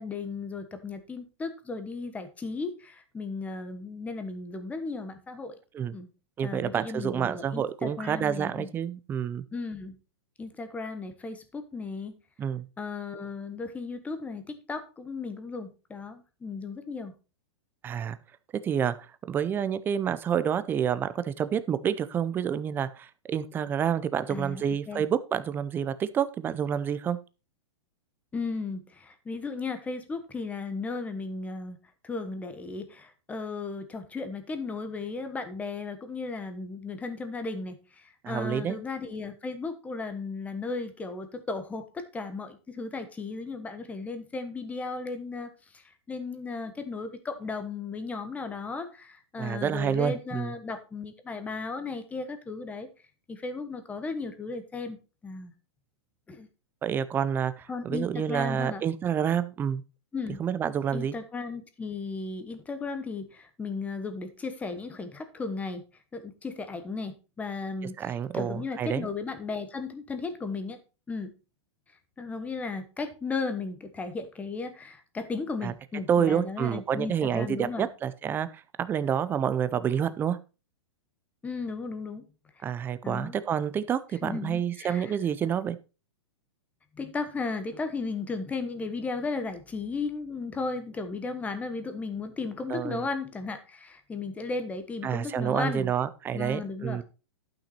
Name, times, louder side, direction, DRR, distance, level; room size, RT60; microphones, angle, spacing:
voice 1, 0.0-5.6 5.9-6.1 6.4-8.7 9.5-9.9 10.4-12.1 12.8-17.1 24.3-25.1 28.3-31.8 32.0-52.9 53.3-55.0 55.2-55.5 56.3-56.5 57.7-58.8 60.1-60.4 60.9-65.8 66.1-67.9 68.3-70.8 71.1-71.3 72.2-77.9 81.4-82.2 83.0-83.4 84.2-85.2 87.0-95.9 96.3-97.0, left 4 dB, 10° left, 9 dB, 1.1 m, -35 dB
voice 2, 6.4-9.4 12.4-12.6 17.8-18.2 18.6-18.9 19.3-27.2 38.2-38.8 49.4-50.5 56.8-59.8 60.4-61.1 68.0-69.1 75.6-75.7 76.1-80.4 82.6-85.8 92.7-93.1 95.0-97.0, right 8 dB, 15° right, 14 dB, 0.5 m, -28 dB
11.5 x 5.9 x 4.2 m, 0.32 s
hypercardioid pair, 150°, 15 cm